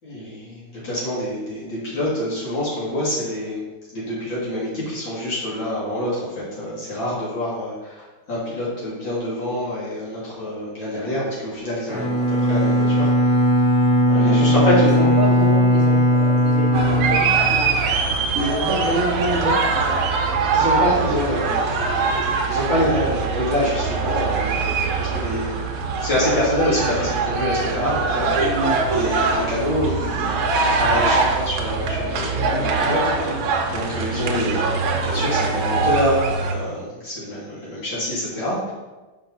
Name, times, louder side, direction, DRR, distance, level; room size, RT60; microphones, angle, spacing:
voice 1, 0.0-3.6 3.9-13.1 14.1-15.2 20.5-21.7 22.5-25.6 25.9-28.6 28.9-34.7 35.0-38.7, left 1 dB, 60° left, -8 dB, 3.3 m, -26 dB
Bowed string instrument, 11.9-17.9, left 1 dB, 30° left, 2.7 m, -18 dB
voice 2, 14.8-17.7 18.3-19.8 28.4-28.8, right 2 dB, 45° right, -6 dB, 1.3 m, -26 dB
sound 1, 16.7-36.5, right 4 dB, 75° right, 1.6 m, -22 dB
6.4 x 5.2 x 4.0 m, 1.2 s
omnidirectional pair, 2.4 m